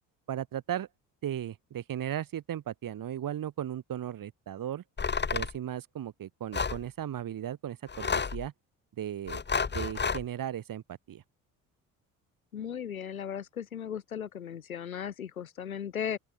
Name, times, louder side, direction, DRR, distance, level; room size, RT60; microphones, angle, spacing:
voice 1, 0.3-0.9 1.2-4.8 5.3-8.5 9.0-9.4 9.7-11.2, right 11 dB, 55° right, 6.6 m, -36 dB
sound 1, 5.0-5.6 6.5-6.8 7.9-8.5 9.3-10.2, left 5 dB, 25° left, 2.0 m, -30 dB
voice 2, 12.5-16.2, left 8 dB, 90° left, 7.8 m, -36 dB
open air
hypercardioid pair, 55°, 41 cm